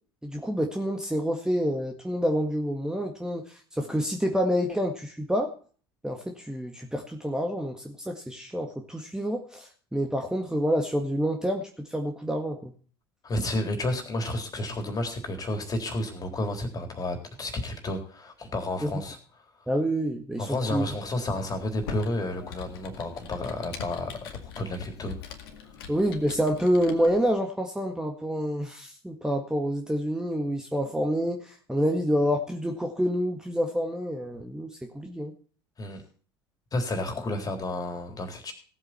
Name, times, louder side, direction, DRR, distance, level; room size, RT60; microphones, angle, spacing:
voice 1, 0.2-5.5 6.0-12.7 19.7-20.8 25.9-35.3, equal, 5° right, 3 dB, 1.8 m, -28 dB
voice 2, 13.2-19.2 20.4-24.1 24.4-25.2 35.8-36.0 36.7-38.5, left 1 dB, 30° left, 5 dB, 3.7 m, -31 dB
Computer keyboard, 21.5-27.3, left 8 dB, 70° left, 2.0 m, -43 dB
17.5 x 8.1 x 4.4 m, 0.42 s
figure-of-eight pair, 65°, 13 cm